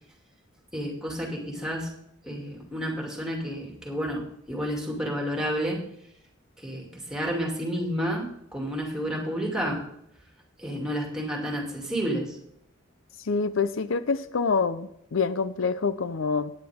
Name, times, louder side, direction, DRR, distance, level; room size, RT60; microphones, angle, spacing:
voice 1, 0.7-1.9 2.2-5.8 6.6-9.8 10.6-12.4, equal, 5° right, -1 dB, 2.5 m, -30 dB
voice 2, 13.3-16.5, left 4 dB, 70° left, 13 dB, 0.6 m, -26 dB
16.5 x 9.7 x 3.6 m, 0.74 s
head